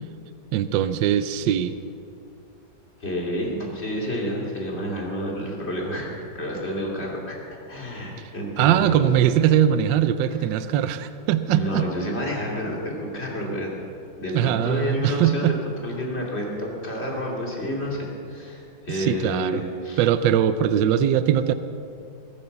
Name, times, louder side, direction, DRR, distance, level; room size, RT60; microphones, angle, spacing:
voice 1, 0.5-1.8 8.6-11.8 14.3-15.5 18.9-19.6 20.0-21.5, right 10 dB, 75° right, 12 dB, 1.3 m, -21 dB
voice 2, 3.0-9.3 10.3-10.5 11.5-13.7 14.2-20.0, equal, 30° left, -2 dB, 3.0 m, -29 dB
21.5 x 8.6 x 7.0 m, 2.5 s
omnidirectional pair, 2.1 m